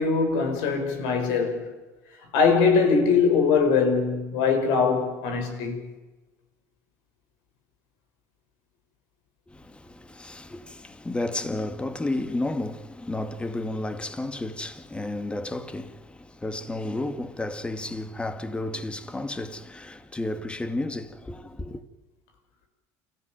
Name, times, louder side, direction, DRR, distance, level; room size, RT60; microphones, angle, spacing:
voice 1, 0.0-1.7 2.3-5.8, left 5 dB, 75° left, 5.7 m, -22 dB
voice 2, 9.5-21.8, left 2 dB, 15° left, 2.2 m, -32 dB
28.5 x 14.5 x 9.3 m
supercardioid pair, 90°, 8 cm